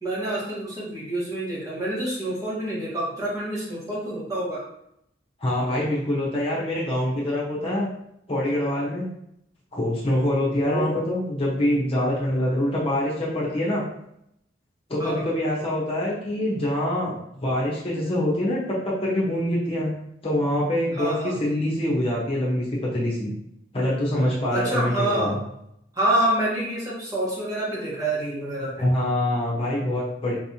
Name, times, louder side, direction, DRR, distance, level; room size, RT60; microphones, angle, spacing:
voice 1, 0.0-4.6 10.7-11.0 15.0-15.2 20.9-21.4 24.5-25.4 25.9-28.8, right 1 dB, 20° right, -7 dB, 1.3 m, -27 dB
voice 2, 5.4-7.9 8.3-9.1 9.7-13.8 14.9-19.9 20.2-23.3 23.7-25.4 28.8-30.3, left 1 dB, 30° left, -5 dB, 1.1 m, -25 dB
4.6 x 3.3 x 2.9 m, 0.76 s
head